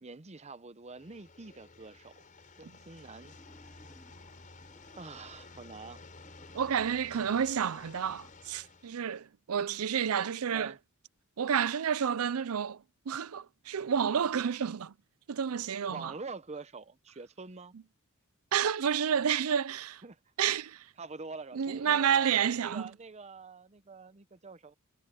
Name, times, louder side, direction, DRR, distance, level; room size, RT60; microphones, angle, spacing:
voice 1, 0.0-2.2 2.6-3.4 4.9-6.0 7.1-7.4 10.5-10.8 15.9-17.7 20.0-20.2 21.0-22.3 22.6-24.7, right 4 dB, 30° right, 0.8 m, -45 dB
sound 1, 0.9-8.9, left 3 dB, 40° left, 4.7 m, -53 dB
Wild animals, 3.2-5.7 6.2-8.7, equal, 10° left, 3.2 m, -61 dB
voice 2, 6.5-10.7 11.4-14.9 15.3-16.1 18.5-20.0 20.4-20.9 21.5-22.9, right 8 dB, 85° right, 0.5 m, -30 dB
head